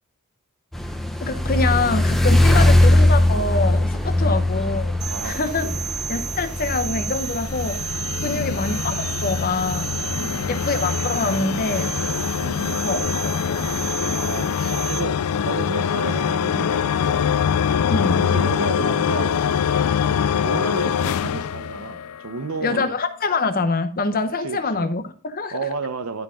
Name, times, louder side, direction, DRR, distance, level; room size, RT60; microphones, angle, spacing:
sound 1, 0.7-14.4, left 1 dB, ahead, 0.7 m, -22 dB
voice 1, 1.2-4.9 5.2-5.7 6.1-7.8 8.2-9.9 10.5-11.9 12.8-13.6 17.9-18.3 22.6-25.5, left 3 dB, 40° left, 0.8 m, -25 dB
voice 2, 4.2-4.5 5.1-5.9 8.2-8.6 10.2-10.6 12.4-12.8 14.2-17.4 18.1-19.7 20.4-23.0 24.4-24.9 25.5-26.2, right 3 dB, 70° right, 0.9 m, -32 dB
sound 2, 5.0-15.0, right 7 dB, 50° right, 1.3 m, -32 dB
sound 3, 6.3-22.5, left 7 dB, 80° left, 0.3 m, -24 dB
12.0 x 4.5 x 3.7 m
head